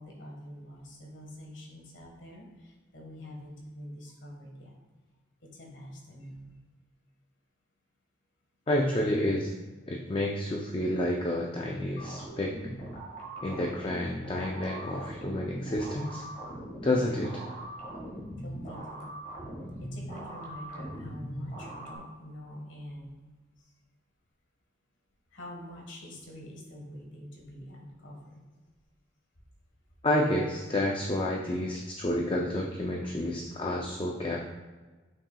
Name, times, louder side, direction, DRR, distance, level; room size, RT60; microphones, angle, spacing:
voice 1, 0.0-2.5 2.9-4.7 5.4-6.6 18.4-19.1 19.9-23.1 25.3-28.4 31.4-31.6, left 1 dB, 65° left, 0 dB, 1.5 m, -45 dB
voice 2, 8.7-9.5 9.9-12.5 13.4-16.2 16.8-17.4 30.0-34.5, left 1 dB, 25° left, -1 dB, 0.4 m, -29 dB
sound 1, 12.0-22.0, right 1 dB, 40° left, 1.5 m, -41 dB
7.5 x 5.7 x 2.3 m, 1.3 s
head